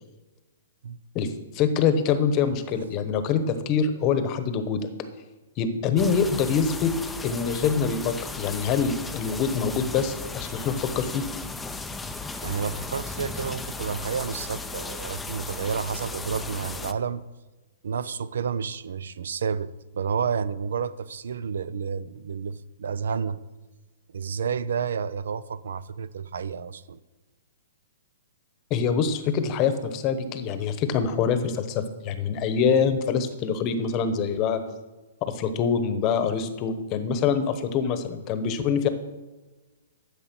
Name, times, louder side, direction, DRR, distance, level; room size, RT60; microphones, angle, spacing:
voice 1, 1.5-4.9 5.6-6.9 7.2-11.2 28.7-34.6 35.3-38.9, left 6 dB, 25° left, 10 dB, 1.0 m, -25 dB
sound 1, 6.0-16.9, left 3 dB, 5° left, 0.5 m, -36 dB
voice 2, 12.4-17.2 17.8-23.4 24.1-27.0, right 6 dB, 75° right, 17 dB, 0.6 m, -30 dB
12.0 x 7.3 x 6.1 m, 1.2 s
hypercardioid pair, 160°, 0 cm